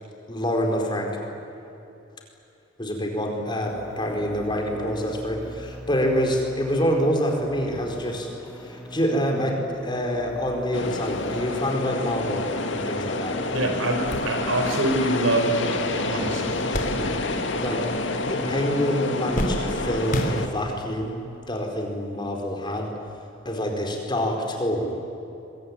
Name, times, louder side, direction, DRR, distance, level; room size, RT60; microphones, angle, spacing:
voice 1, 0.3-1.2 2.8-8.3 8.6-13.4 16.9-17.8 18.2-21.2 21.5-22.9 23.4-25.0, equal, 25° left, 2 dB, 4.4 m, -26 dB
sound 1, 3.6-21.7, equal, ahead, 2.5 m, -42 dB
sound 2, 10.7-20.5, left 2 dB, 65° left, 2.2 m, -28 dB
sound 3, 13.3-13.4 13.8-17.6 17.8-18.5 18.8-20.9 21.7-21.8 23.1-23.2, equal, 45° left, 3.2 m, -32 dB
voice 2, 13.5-16.6, right 1 dB, 90° right, 4 dB, 5.5 m, -25 dB
25.0 x 23.5 x 9.7 m, 2.7 s
head